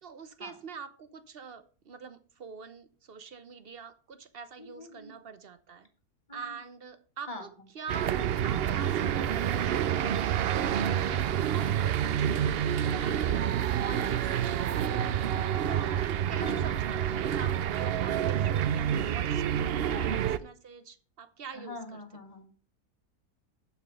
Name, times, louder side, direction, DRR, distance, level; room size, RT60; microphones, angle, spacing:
voice 1, 0.0-5.9 6.3-7.5 7.7-8.1 8.4-11.3 11.5-13.5 13.8-15.1 15.6-22.0, right 5 dB, 45° right, 12 dB, 0.9 m, -44 dB
voice 2, 4.6-5.1 6.3-6.4 7.3-7.5 13.8-14.2 16.4-16.6 19.9-20.3 21.5-22.5, left 2 dB, 25° left, 4 dB, 1.8 m, -43 dB
sound 1, 7.9-20.4, right 9 dB, 85° right, 0.5 m, -28 dB
11.5 x 5.9 x 5.5 m, 0.40 s
omnidirectional pair, 1.7 m